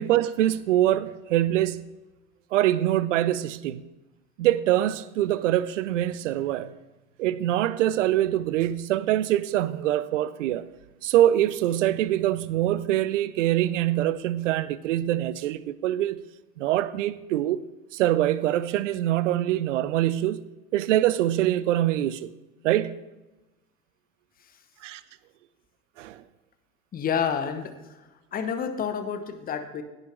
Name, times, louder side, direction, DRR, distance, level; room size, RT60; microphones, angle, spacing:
voice 1, 0.0-1.9 2.5-3.8 4.4-6.7 7.2-10.6 11.0-16.2 16.6-17.6 17.9-20.4 20.7-22.3 22.6-23.0 24.8-25.0 26.0-26.2, right 13 dB, 55° right, 0.6 m, -24 dB
voice 2, 26.9-28.0 28.3-29.8, left 7 dB, 20° left, 0.9 m, -29 dB
16.5 x 6.4 x 3.3 m
figure-of-eight pair, 80°, 43 cm